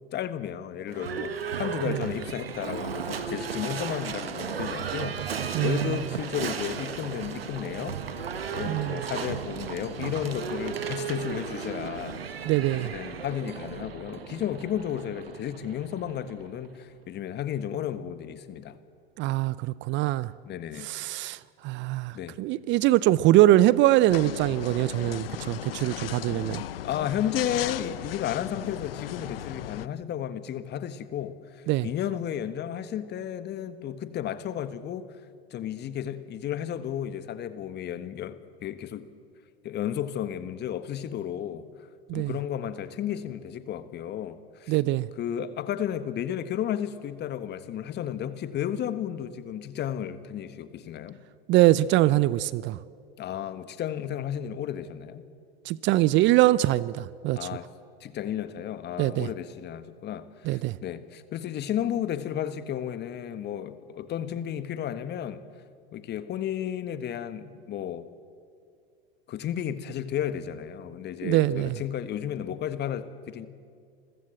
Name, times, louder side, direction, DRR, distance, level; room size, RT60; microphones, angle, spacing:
voice 1, 0.1-8.0 8.5-12.2 12.7-18.8 20.4-20.9 22.1-22.3 26.8-35.1 35.5-39.1 39.6-41.6 42.1-44.8 45.2-51.2 53.2-55.2 57.3-57.7 58.0-65.4 65.9-68.1 69.3-73.5, left 10 dB, 35° left, 1.5 m, -33 dB
Livestock farm animals working animals / Bell, 0.9-16.8, right 6 dB, 85° right, 1.5 m, -35 dB
voice 2, 5.5-5.9 8.7-9.0 12.5-12.9 19.2-20.3 20.8-21.4 21.6-26.6 31.7-31.9 42.1-42.3 44.7-45.1 51.5-52.8 55.7-57.4 59.0-59.3 60.5-60.8 71.2-71.8, right 15 dB, 40° right, 0.6 m, -23 dB
sound 1, 24.1-29.9, left 12 dB, 80° left, 0.7 m, -36 dB
27.0 x 15.0 x 7.7 m
hypercardioid pair, 90°, 29 cm